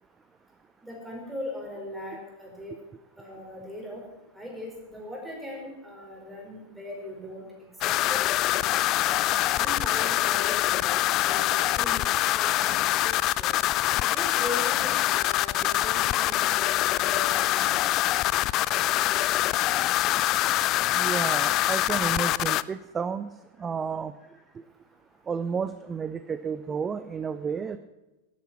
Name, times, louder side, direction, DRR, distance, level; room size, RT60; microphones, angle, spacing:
voice 1, 0.8-2.7 3.2-4.0 4.3-8.2 9.0-13.0 13.4-13.5 14.1-17.9, left 1 dB, 5° right, -2 dB, 5.1 m, -39 dB
sound 1, 7.8-22.6, left 16 dB, 35° left, 0.3 m, -24 dB
voice 2, 20.9-23.3 23.6-24.1 25.3-27.8, right 6 dB, 20° right, 13 dB, 0.5 m, -31 dB
13.0 x 10.5 x 7.3 m, 1.1 s
figure-of-eight pair, 90°, 0 cm